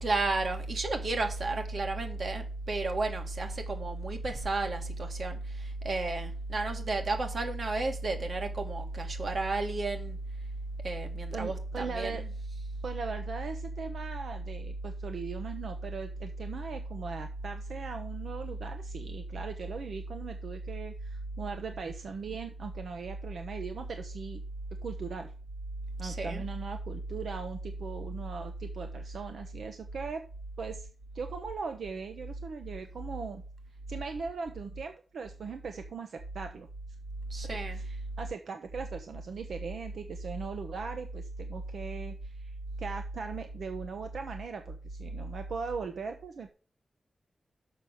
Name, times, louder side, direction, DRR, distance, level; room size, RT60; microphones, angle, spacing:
voice 1, 0.0-10.2 10.8-12.6 26.0-26.4 37.3-37.8, right 2 dB, 55° right, 2.0 m, -32 dB
voice 2, 11.3-12.2 12.8-24.4 24.8-25.3 26.0-30.2 30.6-30.9 31.1-33.4 33.9-36.7 37.7-42.5 42.8-46.5, right 5 dB, 80° right, 0.9 m, -39 dB
6.8 x 6.1 x 6.4 m
wide cardioid pair, 145°, 0 cm